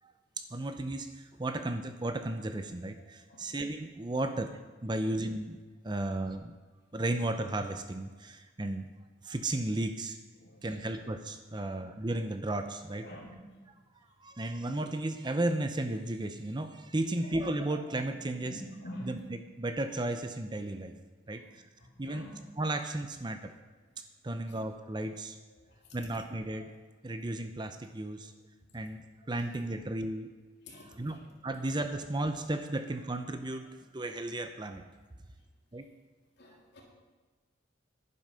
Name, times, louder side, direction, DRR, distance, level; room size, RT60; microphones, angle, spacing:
voice 1, 0.4-4.5 4.8-5.6 5.8-6.6 6.9-8.9 9.2-10.2 10.6-13.1 14.2-18.6 19.0-20.9 21.3-21.6 22.0-22.3 22.6-23.5 24.2-25.4 25.9-26.7 27.0-28.3 28.7-30.3 30.7-31.2 31.4-33.7 33.9-34.8 35.7-35.9, right 1 dB, 25° right, 8 dB, 0.6 m, -34 dB
voice 2, 18.4-19.1 21.3-21.4 22.1-22.3 30.7-31.2 36.4-36.8, equal, 60° left, -3 dB, 3.2 m, -46 dB
11.0 x 9.7 x 5.6 m, 1.3 s
head